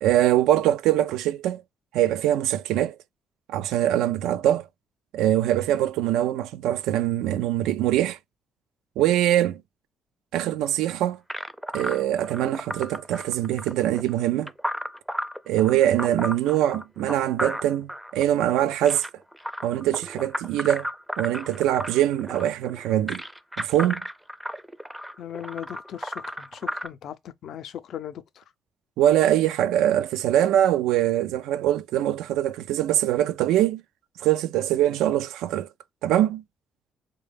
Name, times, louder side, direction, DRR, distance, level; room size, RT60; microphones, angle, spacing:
voice 1, 0.0-1.6 1.9-3.0 3.5-4.7 5.1-8.2 9.0-9.6 10.3-11.2 11.7-14.5 15.5-19.0 19.6-20.9 21.2-23.2 23.6-24.0 29.0-33.8 34.2-35.7 36.0-36.4, right 12 dB, 90° right, 0.3 m, -23 dB
sound 1, 11.3-26.9, equal, 5° right, 0.4 m, -34 dB
voice 2, 25.2-28.4, left 10 dB, 70° left, 0.5 m, -38 dB
4.0 x 2.2 x 3.3 m
cardioid pair, 80°, 0 cm